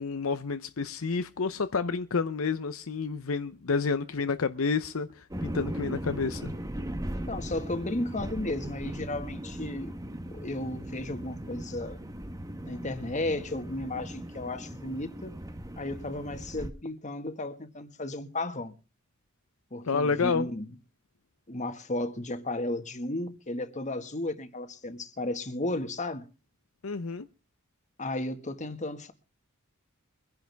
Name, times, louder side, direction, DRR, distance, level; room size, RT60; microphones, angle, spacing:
voice 1, 0.0-6.5 19.8-20.5 26.8-27.3, left 4 dB, 75° left, 0.7 m, -29 dB
sound 1, 5.3-16.7, right 1 dB, 15° right, 1.1 m, -38 dB
voice 2, 7.3-9.9 10.3-12.0 12.7-15.4 15.8-18.7 19.7-20.7 21.5-26.2 28.0-29.1, left 2 dB, 35° left, 1.7 m, -34 dB
23.5 x 10.5 x 3.5 m
head